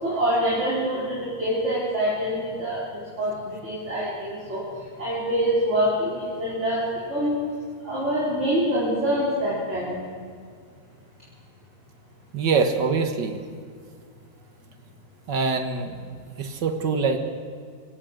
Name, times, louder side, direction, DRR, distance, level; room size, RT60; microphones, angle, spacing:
voice 1, 0.0-2.8 3.2-4.6 5.0-6.8 7.1-7.4 7.8-10.0, equal, 35° right, -7 dB, 4.8 m, -25 dB
voice 2, 12.3-13.4 15.3-15.9 16.4-17.2, right 4 dB, 65° right, 6 dB, 2.0 m, -24 dB
23.5 x 17.0 x 6.6 m, 2.1 s
omnidirectional pair, 2.1 m